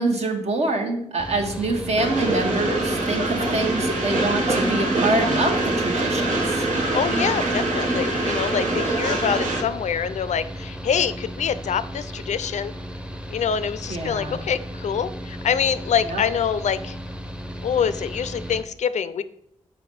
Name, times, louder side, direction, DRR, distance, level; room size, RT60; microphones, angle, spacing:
voice 1, 0.0-6.6 13.9-14.4 16.1-16.2, right 2 dB, 60° right, 3 dB, 1.1 m, -25 dB
Mechanical fan, 1.2-18.6, equal, 10° right, 0.7 m, -35 dB
Train, 2.0-9.6, right 2 dB, 90° right, 1.0 m, -24 dB
voice 2, 6.9-12.7 13.3-17.0 17.6-19.2, left 7 dB, 70° left, 14 dB, 0.4 m, -25 dB
4.9 x 4.3 x 5.3 m, 0.75 s
cardioid pair, 50°, 12 cm